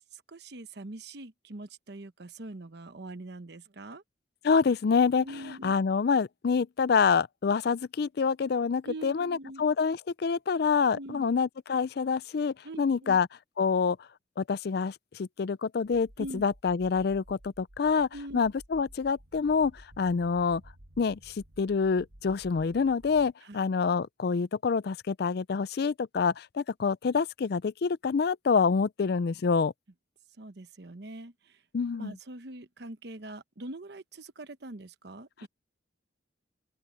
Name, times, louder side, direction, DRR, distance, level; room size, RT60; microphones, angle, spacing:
voice 1, 0.1-4.0 5.2-5.7 8.8-9.6 10.9-11.2 12.6-13.2 16.2-16.4 18.1-18.5 23.4-23.6 30.4-31.6 31.9-35.5, right 1 dB, 60° right, 1.0 m, -43 dB
voice 2, 4.4-13.3 13.6-14.0 14.4-20.6 21.0-29.7 31.7-32.2 35.4-35.5, left 5 dB, 55° left, 0.4 m, -27 dB
sound 1, 15.8-23.3, right 1 dB, 85° right, 2.1 m, -54 dB
open air
head